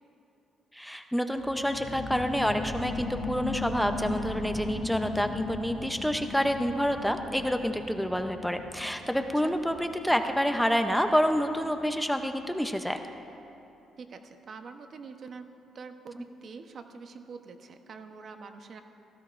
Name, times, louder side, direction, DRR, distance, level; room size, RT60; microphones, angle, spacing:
voice 1, 0.7-13.0, equal, ahead, 6 dB, 0.6 m, -28 dB
sound 1, 1.3-12.4 12.9-13.0, left 3 dB, 45° left, 2.5 m, -38 dB
voice 2, 14.0-15.4 15.7-18.8, right 5 dB, 55° right, 6 dB, 0.9 m, -45 dB
17.0 x 15.5 x 2.5 m, 2.9 s
cardioid pair, 90°, 0 cm